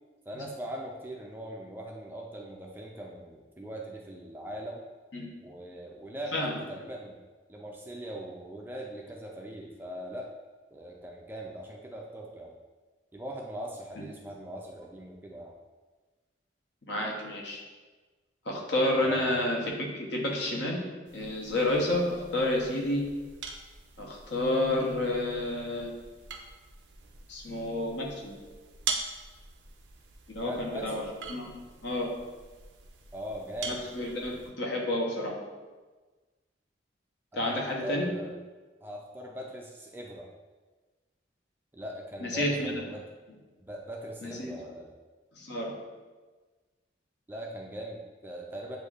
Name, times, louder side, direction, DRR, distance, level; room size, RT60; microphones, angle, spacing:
voice 1, 0.3-4.8 5.4-7.2 7.5-10.3 10.7-12.5 13.1-15.5 19.0-19.3 30.4-31.1 33.1-33.8 37.3-38.3 38.8-40.3 41.7-43.0 43.6-44.9 47.3-48.8, equal, 10° right, -1 dB, 0.3 m, -40 dB
voice 2, 16.9-17.6 18.4-20.8 21.1-23.1 24.0-25.9 27.3-28.3 30.3-31.0 31.3-31.6 31.8-32.1 33.6-35.3 37.3-38.1 42.2-42.7 44.2-44.5 45.4-45.7, left 1 dB, 65° left, -1 dB, 0.9 m, -30 dB
sound 1, 21.0-34.5, right 5 dB, 70° right, 0.5 m, -43 dB
7.7 x 2.6 x 2.4 m, 1.3 s
head